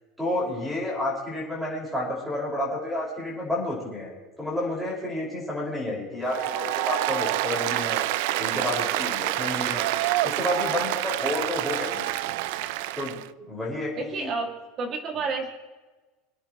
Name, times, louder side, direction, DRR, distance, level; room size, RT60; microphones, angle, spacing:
voice 1, 0.2-4.1 4.4-8.0 8.4-9.8 10.2-12.1 12.9-13.2 13.5-14.3, left 1 dB, ahead, -4 dB, 5.3 m, -30 dB
Applause, 6.2-13.3, right 15 dB, 60° right, 0.4 m, -27 dB
voice 2, 14.0-14.5 14.8-15.5, right 4 dB, 30° right, 3 dB, 2.3 m, -29 dB
25.5 x 9.9 x 3.1 m, 1.2 s
supercardioid pair, 170°, 0 cm